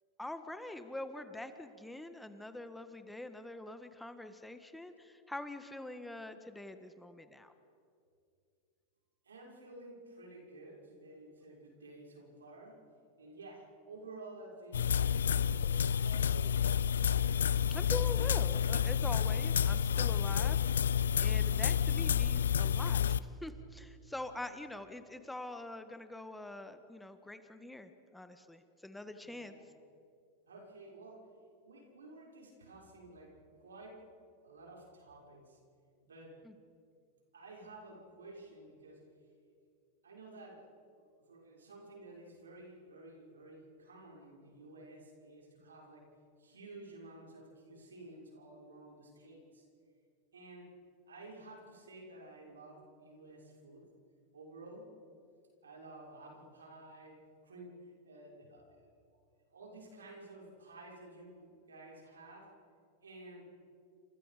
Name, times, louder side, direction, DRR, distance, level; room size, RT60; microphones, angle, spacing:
voice 1, 0.2-7.5 17.7-29.5 36.4-36.5, left 1 dB, 5° left, 8 dB, 1.6 m, -44 dB
voice 2, 9.2-12.9 13.2-15.0 15.3-16.6 29.2-29.6 30.5-31.3 31.6-34.1 34.4-35.6 36.0-36.4 37.3-39.0 40.0-40.7 41.0-46.1 46.4-49.7 50.3-50.7 51.1-53.9 54.3-54.9 55.6-58.9 59.5-62.5 63.0-63.5, right 2 dB, 85° right, -1 dB, 6.1 m, -52 dB
sound 1, 14.7-23.2, left 8 dB, 80° left, 0.6 m, -29 dB
29.0 x 26.5 x 5.2 m, 2.4 s
hypercardioid pair, 95°, 0 cm